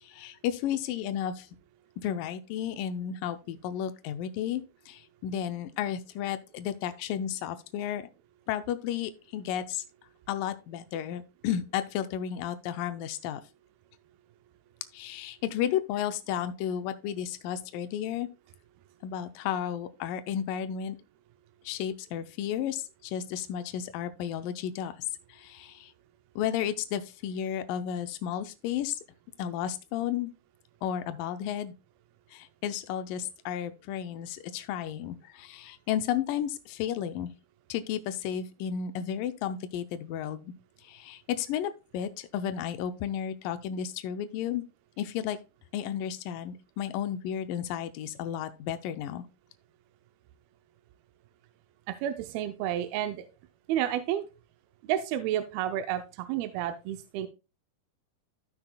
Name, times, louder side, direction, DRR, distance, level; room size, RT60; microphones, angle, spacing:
voice 1, 0.0-1.5 2.0-8.1 8.5-9.8 10.3-13.4 14.9-18.3 19.0-21.0 21.7-24.9 25.3-25.9 26.4-29.0 29.4-30.3 30.8-31.7 32.3-37.3 37.7-40.5 40.8-44.6 45.0-45.4 45.7-49.2, left 10 dB, 80° left, 2.0 m, -33 dB
voice 2, 51.9-53.3 53.7-54.2 54.8-57.3, right 11 dB, 80° right, 2.3 m, -31 dB
14.0 x 5.9 x 2.2 m
omnidirectional pair, 4.6 m